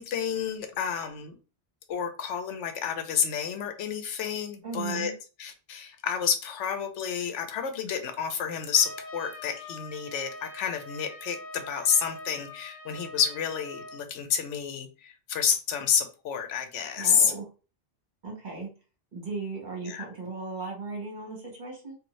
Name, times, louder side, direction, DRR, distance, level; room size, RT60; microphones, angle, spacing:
voice 1, 0.0-1.4 1.9-5.1 5.4-17.3 19.9-20.0, left 7 dB, 85° left, 7 dB, 0.9 m, -29 dB
voice 2, 4.6-5.1 17.0-17.4 18.2-18.7 19.1-22.0, right 4 dB, 45° right, -1 dB, 1.2 m, -36 dB
Trumpet, 8.7-14.0, left 2 dB, 60° left, 0.7 m, -44 dB
2.6 x 2.5 x 3.0 m, 0.33 s
omnidirectional pair, 1.2 m